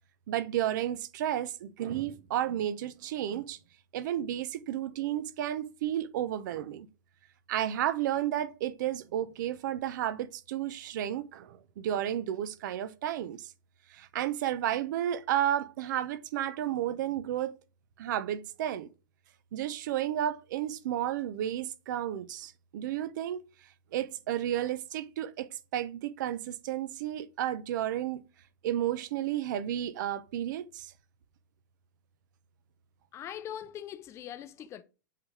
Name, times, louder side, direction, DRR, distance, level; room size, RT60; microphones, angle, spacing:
voice 1, 0.3-3.6 3.9-6.9 7.5-13.5 13.9-17.5 18.0-18.9 19.5-23.4 23.9-28.2 28.6-30.9, right 11 dB, 65° right, 0.9 m, -32 dB
voice 2, 33.1-34.8, left 10 dB, 25° left, 0.6 m, -41 dB
7.7 x 4.0 x 3.3 m
hypercardioid pair, 135°, 11 cm